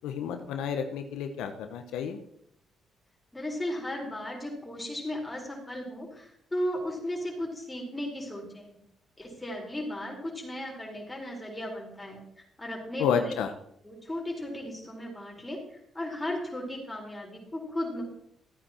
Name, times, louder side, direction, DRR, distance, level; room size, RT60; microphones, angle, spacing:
voice 1, 0.0-2.2 13.0-13.5, left 7 dB, 90° left, 6 dB, 0.9 m, -30 dB
voice 2, 3.3-8.8 9.2-12.2 12.6-13.3 13.8-18.0, left 1 dB, 15° left, -1 dB, 4.4 m, -35 dB
14.5 x 9.2 x 4.4 m, 0.74 s
cardioid pair, 90°, 0 cm